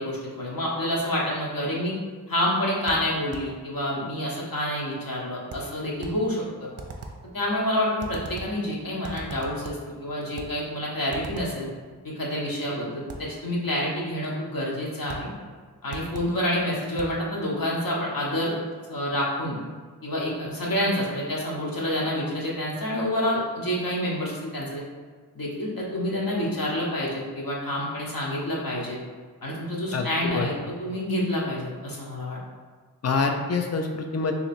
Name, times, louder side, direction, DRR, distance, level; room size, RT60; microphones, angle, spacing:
voice 1, 0.0-1.9 2.3-6.7 7.3-11.7 12.0-15.3 15.8-18.5 18.9-19.6 20.0-24.8 25.3-29.0 29.4-30.5 30.8-32.4, left 1 dB, 60° left, -5 dB, 1.1 m, -28 dB
sound 1, 2.9-3.6 5.5-6.3 6.8-7.3 8.0-8.6 9.0-9.9 10.4-10.6 11.1-11.6 13.1-13.4 15.1-15.4 15.9-16.4 17.0-17.2, right 3 dB, 40° right, 0.6 m, -40 dB
voice 2, 29.9-30.5 33.0-34.3, left 4 dB, 40° left, 4 dB, 0.5 m, -26 dB
2.9 x 2.9 x 4.2 m, 1.5 s
cardioid pair, 45°, 38 cm